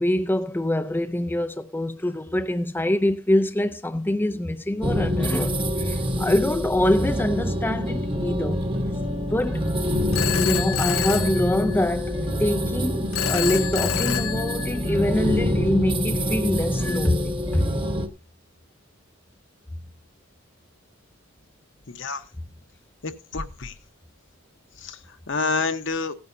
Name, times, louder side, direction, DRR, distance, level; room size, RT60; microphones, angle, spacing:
voice 1, 0.0-8.7 9.3-9.7 10.3-17.7, left 1 dB, 10° left, 0.5 m, -25 dB
sound 1, 4.8-18.1, equal, 25° right, 1.2 m, -26 dB
Telephone, 10.1-12.1 13.1-15.1, left 11 dB, 80° left, 0.5 m, -28 dB
voice 2, 21.9-22.2 23.0-23.7 24.8-25.0 25.3-26.1, left 3 dB, 60° left, 1.2 m, -28 dB
17.0 x 9.6 x 2.7 m
head